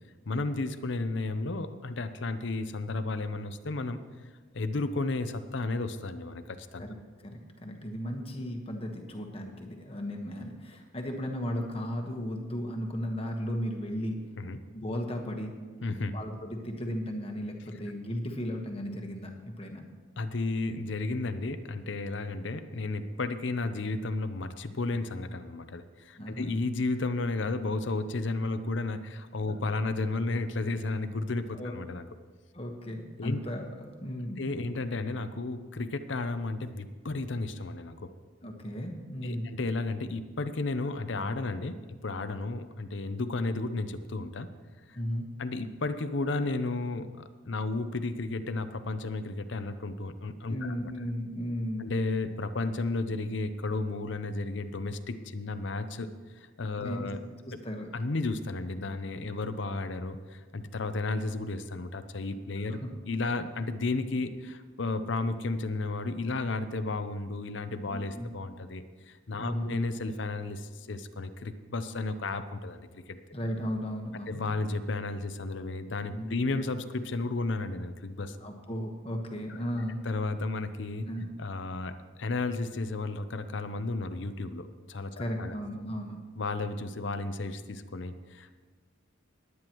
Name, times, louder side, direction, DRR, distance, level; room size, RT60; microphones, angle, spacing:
voice 1, 0.3-4.0 4.5-6.8 14.4-14.6 15.8-16.2 20.2-32.0 33.2-33.4 34.4-38.1 39.2-44.5 44.9-45.0 45.4-50.8 51.8-57.2 57.9-62.8 63.1-73.2 74.3-78.4 80.1-81.1 81.4-85.6 86.4-88.5, left 3 dB, 65° left, 10 dB, 0.7 m, -33 dB
voice 2, 7.2-14.2 14.7-15.6 16.1-19.9 26.2-26.5 31.5-31.7 32.5-34.4 38.4-39.5 44.9-45.3 50.5-51.9 56.8-57.1 57.4-57.9 62.7-62.9 67.9-68.3 69.4-69.7 73.3-74.5 76.1-76.6 78.4-80.0 81.1-81.3 85.2-86.2, equal, 30° left, 2 dB, 1.3 m, -35 dB
19.5 x 9.5 x 3.1 m, 1.4 s
head